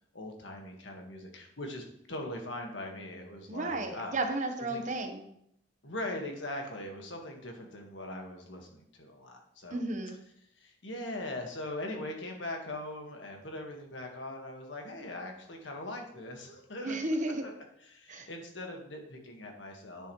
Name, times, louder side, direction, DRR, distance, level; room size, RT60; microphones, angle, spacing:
voice 1, 0.1-4.1 4.7-4.9 5.8-9.8 10.6-20.1, left 1 dB, 85° left, 2 dB, 1.7 m, -41 dB
voice 2, 3.5-5.3 9.7-10.2 16.8-17.4 18.1-18.3, right 2 dB, 45° right, 5 dB, 1.1 m, -33 dB
9.8 x 7.1 x 3.1 m, 0.72 s
head